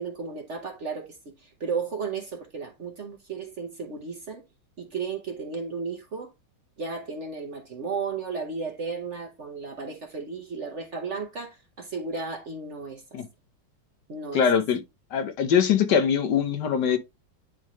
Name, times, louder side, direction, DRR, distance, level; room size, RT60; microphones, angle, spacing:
voice 1, 0.0-4.4 4.8-6.3 6.8-13.0 14.1-14.5, right 5 dB, 45° right, 1.1 m, -34 dB
voice 2, 14.3-14.8 15.1-17.0, left 7 dB, 65° left, 1.5 m, -22 dB
10.0 x 3.6 x 3.0 m
omnidirectional pair, 2.0 m